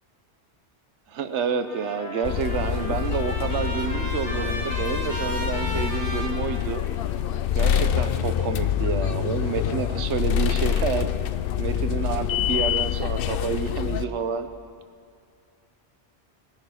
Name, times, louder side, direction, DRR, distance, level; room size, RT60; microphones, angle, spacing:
voice 1, 1.1-6.8 7.5-11.1 11.6-14.5, right 6 dB, 90° right, 10 dB, 1.1 m, -29 dB
Trumpet, 1.6-7.2, equal, 85° left, 2.3 m, -35 dB
sound 1, 2.2-14.0, left 9 dB, 65° left, 0.7 m, -26 dB
18.0 x 10.5 x 5.8 m, 2.3 s
omnidirectional pair, 1.1 m